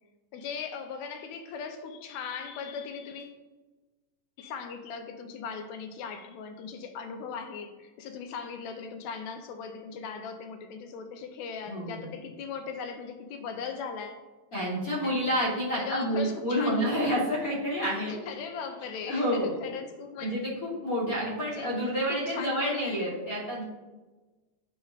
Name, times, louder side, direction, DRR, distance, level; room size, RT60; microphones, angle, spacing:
voice 1, 0.3-3.4 4.4-14.2 15.0-15.2 15.8-16.8 18.1-20.4 21.5-23.1, left 5 dB, 80° left, 6 dB, 1.9 m, -39 dB
voice 2, 11.7-12.1 14.5-18.2 19.1-19.6 20.2-23.6, equal, 45° left, -6 dB, 1.1 m, -29 dB
10.5 x 4.3 x 2.4 m, 1.2 s
omnidirectional pair, 3.3 m